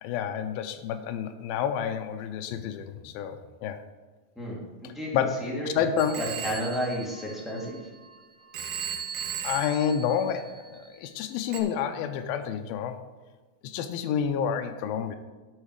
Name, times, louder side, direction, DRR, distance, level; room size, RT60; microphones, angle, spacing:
voice 1, 0.0-3.8 4.8-6.2 9.4-13.0 13.6-15.2, left 8 dB, 85° left, 6 dB, 2.4 m, -29 dB
voice 2, 4.3-5.8 6.2-7.8, equal, ahead, -5 dB, 1.1 m, -32 dB
Telephone, 6.0-8.1 8.5-10.9 11.5-11.6, right 7 dB, 85° right, 1.4 m, -37 dB
10.5 x 6.4 x 4.9 m, 1.3 s
omnidirectional pair, 4.2 m